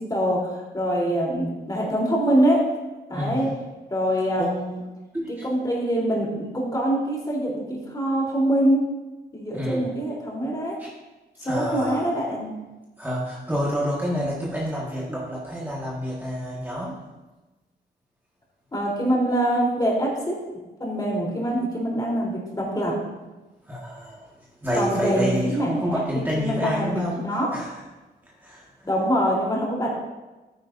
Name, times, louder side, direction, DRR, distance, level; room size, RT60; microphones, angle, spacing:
voice 1, 0.0-2.6 3.1-3.5 3.9-4.8 5.4-8.8 9.3-10.8 11.4-12.5 18.7-20.4 20.8-22.9 24.7-27.5 28.8-30.0, right 1 dB, 20° left, -4 dB, 3.5 m, -24 dB
voice 2, 3.1-3.5 4.1-4.6 5.1-5.4 9.5-9.9 10.8-10.9 11.4-12.2 13.0-17.0 23.6-27.8 28.2-28.9, equal, 10° right, -5 dB, 1.7 m, -29 dB
13.5 x 9.7 x 2.6 m, 1.1 s
wide cardioid pair, 120°, 18 cm